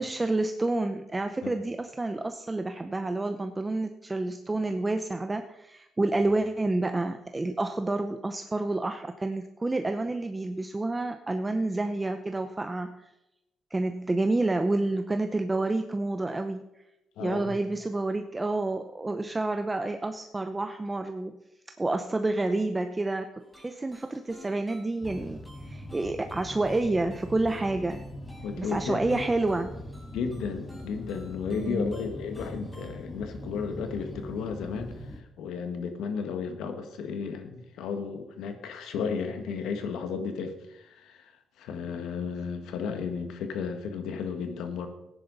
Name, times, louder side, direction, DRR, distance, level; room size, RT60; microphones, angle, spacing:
voice 1, 0.0-13.0 13.7-16.6 17.2-21.4 21.8-23.3 23.6-28.0 28.6-29.7 31.5-31.9, right 2 dB, 20° right, 7 dB, 0.7 m, -29 dB
voice 2, 17.2-17.5 28.4-29.3 30.1-41.3 41.6-44.9, left 5 dB, 85° left, 7 dB, 1.6 m, -34 dB
sound 1, 23.4-33.0, left 1 dB, 10° left, 4.5 m, -54 dB
sound 2, 25.0-35.2, left 1 dB, 25° left, 1.5 m, -42 dB
15.0 x 10.5 x 4.1 m, 0.91 s
cardioid pair, 90°, 0 cm